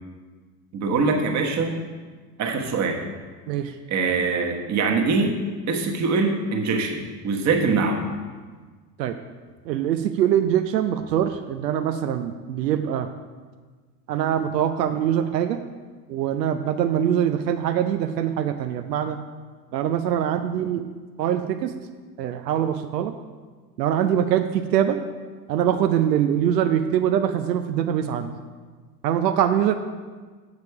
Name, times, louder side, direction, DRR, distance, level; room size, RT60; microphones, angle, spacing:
voice 1, 0.7-1.8 2.4-3.0 3.9-5.4 5.7-8.0, right 4 dB, 35° right, 2 dB, 1.4 m, -23 dB
voice 2, 9.7-13.1 14.1-15.6 16.1-19.2 19.7-20.8 21.2-21.7 22.2-23.1 23.8-25.0 25.5-28.3 29.0-29.7, right 10 dB, 85° right, 7 dB, 0.6 m, -23 dB
6.9 x 6.6 x 4.8 m, 1.4 s
hypercardioid pair, 100°, 48 cm